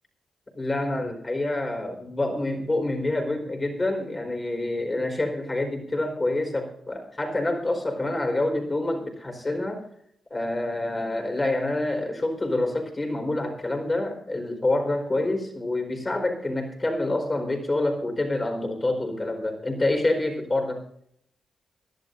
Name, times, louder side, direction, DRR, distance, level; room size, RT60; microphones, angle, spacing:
voice 1, 0.6-9.8 10.3-20.8, left 2 dB, 30° left, 4 dB, 4.4 m, -27 dB
24.0 x 11.5 x 2.6 m, 0.68 s
cardioid pair, 65°, 0 cm